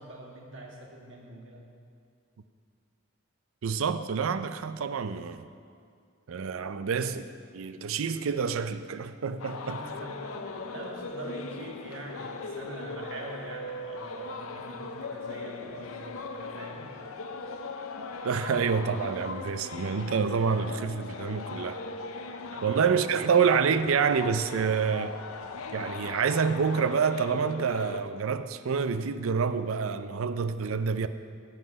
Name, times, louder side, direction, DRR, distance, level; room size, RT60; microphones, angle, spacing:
voice 1, 0.0-1.6 9.6-16.9 22.5-22.9, right 1 dB, 60° right, 1.7 m, -44 dB
voice 2, 3.6-5.5 6.3-9.8 18.2-21.8 22.6-25.2 25.7-31.1, right 6 dB, 75° right, 0.5 m, -27 dB
sound 1, 9.4-28.0, left 3 dB, 85° left, 0.7 m, -39 dB
15.5 x 5.7 x 5.3 m
head